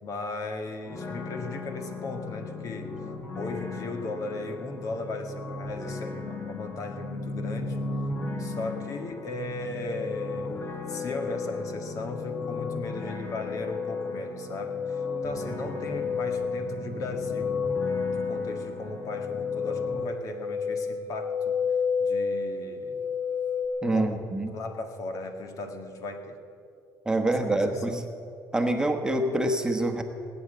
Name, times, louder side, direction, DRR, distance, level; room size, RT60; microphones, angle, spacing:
voice 1, 0.0-3.0 3.4-7.8 8.4-10.6 10.9-17.6 18.0-21.6 22.0-23.0 23.9-26.4 27.3-28.0, left 2 dB, 55° left, 5 dB, 1.8 m, -37 dB
sound 1, 0.8-20.0, left 3 dB, 35° left, 1.7 m, -37 dB
sound 2, 9.4-23.7, left 5 dB, 70° left, 2.6 m, -32 dB
voice 2, 23.8-24.5 27.0-28.0 28.5-30.0, right 1 dB, 10° right, 4 dB, 1.3 m, -26 dB
19.0 x 8.9 x 8.1 m, 2.4 s
cardioid pair, 110°, 7 cm